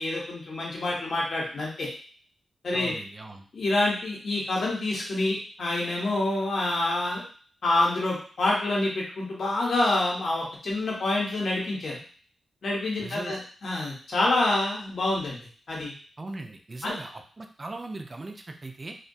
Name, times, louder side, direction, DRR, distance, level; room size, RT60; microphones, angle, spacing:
voice 1, 0.0-1.9 2.6-2.9 3.5-7.2 7.6-12.0 12.6-15.9 16.8-16.9, left 2 dB, 55° left, -3 dB, 0.7 m, -27 dB
voice 2, 2.7-3.4 13.0-13.3 16.2-19.0, right 2 dB, 25° right, 4 dB, 0.3 m, -39 dB
2.2 x 2.2 x 2.6 m, 0.43 s
wide cardioid pair, 145°, 0 cm